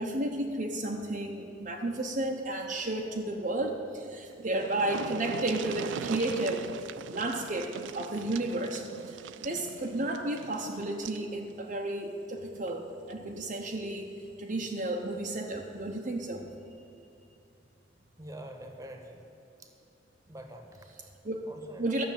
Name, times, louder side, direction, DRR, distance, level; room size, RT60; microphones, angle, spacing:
voice 1, 0.0-6.6 7.1-16.4 21.0-21.4 21.8-22.0, right 1 dB, 45° right, 0 dB, 0.8 m, -33 dB
sound 1, 4.1-4.2 4.4-11.3 12.6-12.7 13.1-13.2, right 7 dB, 85° right, 0.4 m, -41 dB
voice 2, 18.2-19.2 19.6-19.7 20.3-20.8 21.5-21.9, right 1 dB, 20° right, 4 dB, 1.2 m, -45 dB
13.0 x 6.8 x 9.0 m, 2.8 s
head